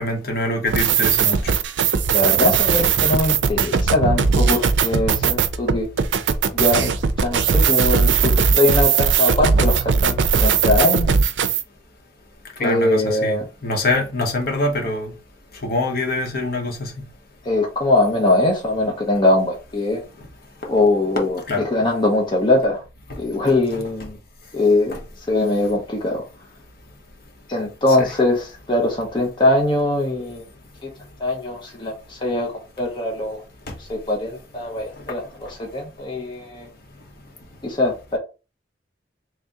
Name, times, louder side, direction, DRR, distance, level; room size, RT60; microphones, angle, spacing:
voice 1, 0.0-1.5 12.6-15.1 15.6-17.0 21.5-21.6 23.5-23.8 24.9-25.0 28.0-28.1 33.7-33.8, left 2 dB, 55° left, 1.2 m, -24 dB
sound 1, 0.7-11.6, right 6 dB, 85° right, 0.4 m, -19 dB
voice 2, 2.1-5.9 6.5-6.9 7.2-11.1 12.6-13.5 17.4-20.0 20.7-21.4 21.6-22.8 23.2-24.2 24.5-25.0 25.3-26.2 27.5-30.4 30.8-30.9 31.2-33.4 33.8-36.7 37.6-38.2, left 2 dB, 25° left, 0.8 m, -21 dB
3.3 x 2.7 x 3.6 m
head